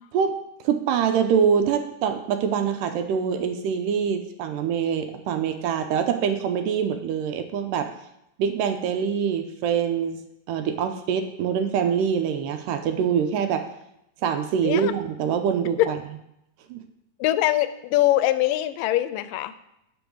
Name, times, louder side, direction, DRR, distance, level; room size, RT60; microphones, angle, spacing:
voice 1, 0.6-7.9 8.4-10.2 10.5-13.7 14.2-16.0 16.7-16.8, right 7 dB, 80° right, 7 dB, 2.2 m, -24 dB
voice 2, 17.2-19.5, left 14 dB, 85° left, 13 dB, 2.1 m, -22 dB
7.8 x 5.3 x 6.2 m, 0.82 s
omnidirectional pair, 3.9 m